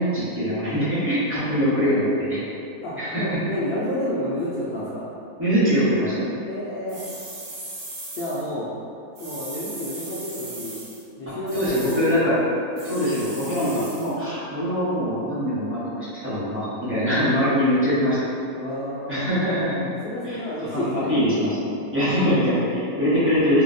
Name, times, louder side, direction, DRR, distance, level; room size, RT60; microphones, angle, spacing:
voice 1, 0.0-2.4 3.0-3.2 5.4-6.3 11.5-12.4 12.8-18.2 19.1-19.9 20.2-20.4 20.7-23.6, equal, 10° right, -13 dB, 0.8 m, -23 dB
voice 2, 2.8-5.1 6.5-7.1 8.1-8.7 9.2-10.8 11.2-12.0 18.5-19.6 20.0-21.1, equal, 65° left, -7 dB, 0.5 m, -30 dB
sound 1, 6.9-8.4 9.1-11.0 11.5-12.2 12.8-14.1, right 2 dB, 70° right, 1.2 m, -38 dB
2.7 x 2.1 x 3.8 m, 2.6 s
omnidirectional pair, 1.5 m